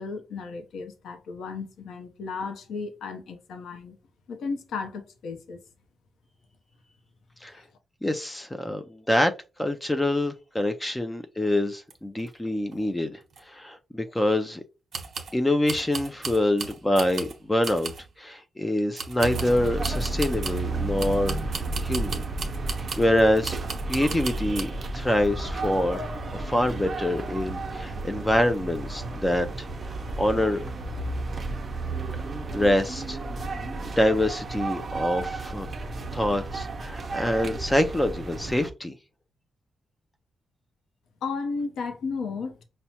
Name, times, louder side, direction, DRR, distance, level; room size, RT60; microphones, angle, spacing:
voice 1, 0.0-4.0 4.3-5.6 7.5-7.7 41.2-42.6, left 4 dB, 85° left, 0.6 m, -34 dB
voice 2, 8.0-9.3 9.6-13.2 13.5-14.6 15.3-17.9 18.2-22.3 23.0-23.6 23.9-26.0 26.3-29.7 30.2-30.7 32.5-33.2 33.8-35.7 36.1-39.0, left 1 dB, 10° left, 0.3 m, -25 dB
sound 1, 11.9-12.0 12.2-12.3 12.7-12.8 13.3-13.4 14.9-15.4 15.7-17.4 17.6-18.1 19.0-20.7 21.0-23.1 23.4-24.7, right 5 dB, 50° right, 1.0 m, -36 dB
sound 2, 19.2-38.7, right 3 dB, 30° right, 0.6 m, -32 dB
5.6 x 2.1 x 2.8 m
wide cardioid pair, 150°, 0 cm